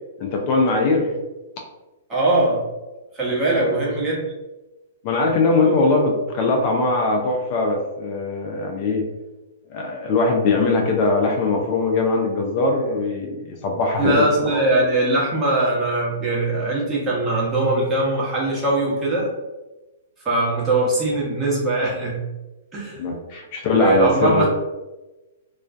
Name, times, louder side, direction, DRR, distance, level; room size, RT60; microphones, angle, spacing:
voice 1, 0.2-1.1 3.5-3.8 5.0-9.0 9.7-14.6 23.0-24.5, left 3 dB, 45° left, 1 dB, 0.4 m, -21 dB
voice 2, 2.1-2.7 3.1-4.2 14.0-19.3 20.2-22.3 22.7-23.0 23.7-24.5, right 2 dB, 25° right, -5 dB, 0.9 m, -21 dB
2.3 x 2.1 x 2.5 m, 1.1 s
hypercardioid pair, 120°, 0 cm